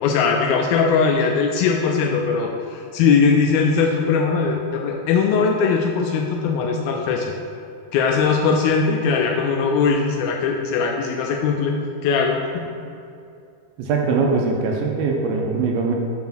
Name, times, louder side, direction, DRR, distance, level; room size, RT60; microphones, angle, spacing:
voice 1, 0.0-7.4 7.9-11.8 12.0-12.5, left 5 dB, 80° left, 2 dB, 2.2 m, -20 dB
voice 2, 13.8-15.9, right 4 dB, 80° right, 0 dB, 2.4 m, -21 dB
6.0 x 5.7 x 5.8 m, 2.5 s
omnidirectional pair, 4.7 m